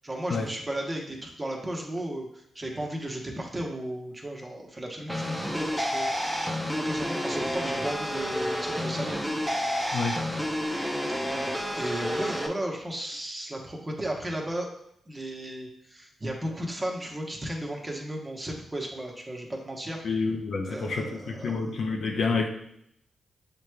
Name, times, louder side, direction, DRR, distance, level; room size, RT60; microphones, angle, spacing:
voice 1, 0.0-6.5 6.8-9.2 9.8-10.0 11.7-14.7 15.1-20.0 20.6-21.8, right 1 dB, 25° right, 0 dB, 1.1 m, -35 dB
sound 1, 5.1-12.5, equal, ahead, 0.7 m, -30 dB
voice 2, 20.0-22.5, left 4 dB, 70° left, 1 dB, 0.7 m, -28 dB
6.9 x 3.1 x 2.3 m, 0.73 s
cardioid pair, 60°, 0 cm